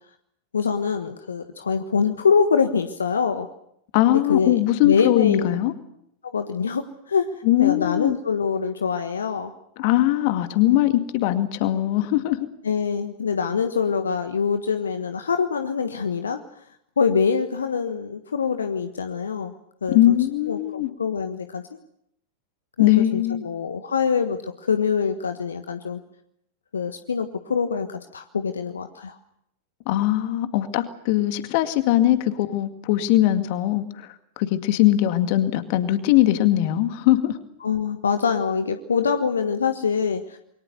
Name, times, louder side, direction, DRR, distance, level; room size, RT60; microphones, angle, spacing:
voice 1, 0.5-3.5 4.1-5.6 6.3-7.3 7.6-9.5 12.6-16.4 17.0-19.5 19.8-20.2 20.5-21.6 22.8-26.0 26.7-29.2 37.6-40.4, left 6 dB, 70° left, 8 dB, 1.4 m, -24 dB
voice 2, 3.9-5.7 7.4-8.2 9.8-12.4 19.9-20.9 22.8-23.4 29.9-34.1 34.4-37.4, left 14 dB, 45° left, 9 dB, 2.1 m, -20 dB
27.5 x 23.0 x 6.8 m, 0.75 s
figure-of-eight pair, 90°, 0 cm